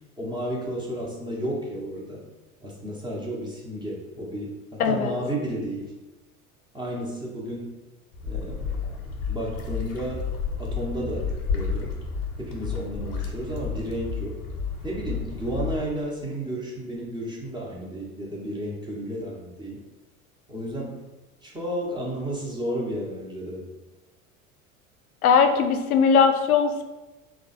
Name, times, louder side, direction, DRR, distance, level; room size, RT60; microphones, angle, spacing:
voice 1, 0.2-2.2 2.6-5.9 6.7-7.7 8.2-8.7 9.3-10.2 10.6-11.9 12.4-14.4 14.8-19.8 20.5-20.9 21.4-23.6, right 1 dB, 10° right, -3 dB, 1.0 m, -32 dB
voice 2, 4.8-5.2 25.2-26.8, left 6 dB, 85° left, 7 dB, 0.5 m, -19 dB
sound 1, 8.1-15.8, left 5 dB, 45° left, 1.1 m, -31 dB
3.2 x 2.4 x 4.0 m, 1.1 s
figure-of-eight pair, 75°, 43 cm